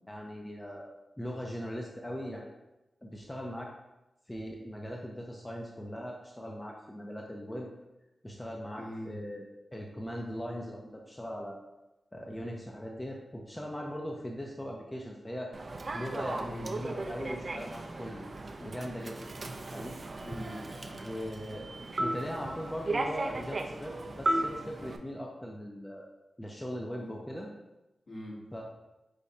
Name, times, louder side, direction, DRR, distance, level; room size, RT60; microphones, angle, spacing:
voice 1, 0.1-2.5 3.0-3.7 4.3-7.7 8.2-11.6 12.1-15.5 15.9-18.3 18.6-19.9 21.0-21.7 22.0-26.0 26.4-27.5 28.5-28.6, equal, 15° left, -1 dB, 0.5 m, -40 dB
voice 2, 8.8-9.1 16.4-16.7 20.2-21.1 27.0-27.1 28.1-28.4, equal, 60° left, -5 dB, 1.4 m, -42 dB
Human voice / Subway metro underground, 15.5-25.0, right 2 dB, 50° right, 0.4 m, -36 dB
5.0 x 2.2 x 4.1 m, 0.99 s
cardioid pair, 70°, 0 cm